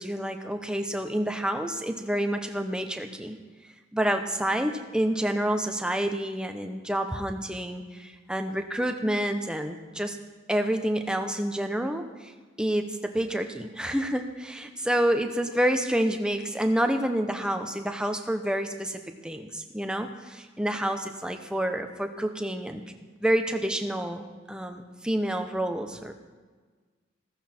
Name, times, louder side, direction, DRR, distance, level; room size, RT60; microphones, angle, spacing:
voice 1, 0.0-3.4 3.9-10.2 10.5-12.0 12.6-22.8 23.2-26.1, right 1 dB, 5° right, 6 dB, 0.9 m, -28 dB
15.0 x 14.5 x 4.4 m, 1.4 s
head